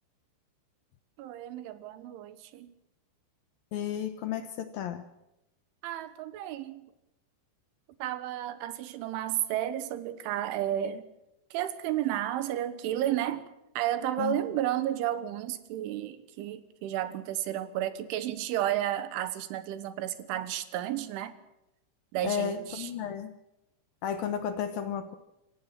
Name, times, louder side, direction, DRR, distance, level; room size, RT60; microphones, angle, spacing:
voice 1, 1.2-2.7 5.8-6.8 8.0-11.1 11.5-13.4 13.8-21.4 22.1-22.9, right 12 dB, 80° right, 3.6 m, -32 dB
voice 2, 3.7-5.0 14.2-14.3 22.2-23.3 24.0-25.1, left 8 dB, 75° left, 2.2 m, -33 dB
27.0 x 15.0 x 7.5 m
omnidirectional pair, 5.5 m